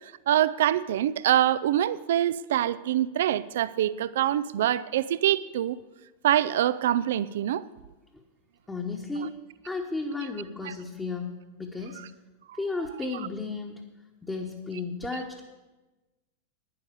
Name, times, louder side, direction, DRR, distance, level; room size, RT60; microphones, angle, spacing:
voice 1, 0.3-5.8 6.2-7.6 10.6-10.7, right 12 dB, 60° right, 0.3 m, -25 dB
voice 2, 8.7-9.3 9.6-11.3 11.6-12.0 12.6-13.8 14.2-15.5, left 3 dB, 10° left, 1.2 m, -33 dB
10.5 x 9.9 x 6.6 m
figure-of-eight pair, 90°, 0 cm